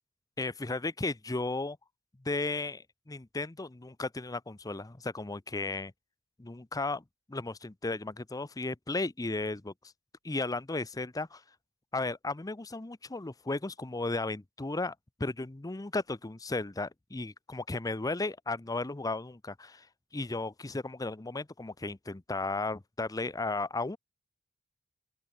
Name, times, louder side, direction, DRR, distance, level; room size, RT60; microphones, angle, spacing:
voice 1, 0.4-1.8 2.2-5.9 6.4-9.7 10.2-11.4 11.9-14.9 15.2-19.9 20.1-24.0, left 3 dB, 15° left, 0.6 m, -35 dB
open air
head